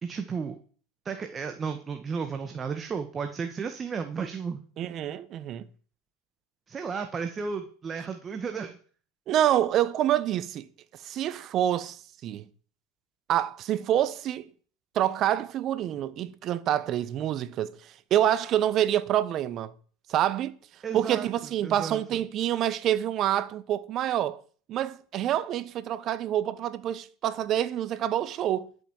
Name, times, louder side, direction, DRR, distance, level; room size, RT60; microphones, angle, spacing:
voice 1, 0.0-0.6 1.1-4.6 6.7-8.8 20.8-21.3 21.6-22.0, right 5 dB, 25° right, 1.7 m, -33 dB
voice 2, 4.8-5.6 9.3-10.7 11.0-12.5 13.3-14.5 14.9-19.7 20.1-20.6 20.9-24.4 24.7-28.7, right 11 dB, 45° right, 1.2 m, -27 dB
12.0 x 8.3 x 7.4 m
hypercardioid pair, 95°, 0 cm